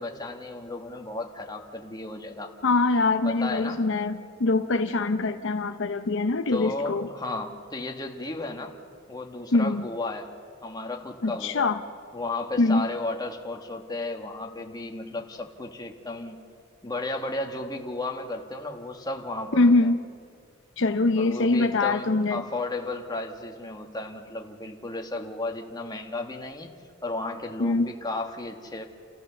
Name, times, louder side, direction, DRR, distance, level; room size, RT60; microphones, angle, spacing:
voice 1, 0.0-2.5 3.2-3.8 6.5-8.8 9.1-10.3 10.6-11.7 12.1-16.4 16.8-19.9 21.2-28.8, left 2 dB, 20° left, 2 dB, 1.6 m, -34 dB
voice 2, 2.6-7.1 9.5-9.9 11.2-11.8 12.6-12.9 19.5-20.0 20.8-22.4 27.6-27.9, left 3 dB, 65° left, 8 dB, 0.8 m, -23 dB
29.5 x 14.5 x 7.0 m, 2.2 s
head